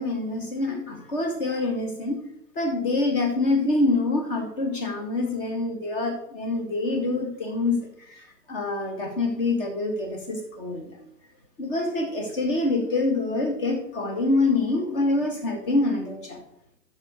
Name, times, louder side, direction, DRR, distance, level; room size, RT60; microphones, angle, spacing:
voice 1, 0.0-2.2 2.6-11.0 11.6-16.4, left 2 dB, 35° left, 4 dB, 2.0 m, -26 dB
9.5 x 6.4 x 5.2 m, 0.78 s
figure-of-eight pair, 120°, 50 cm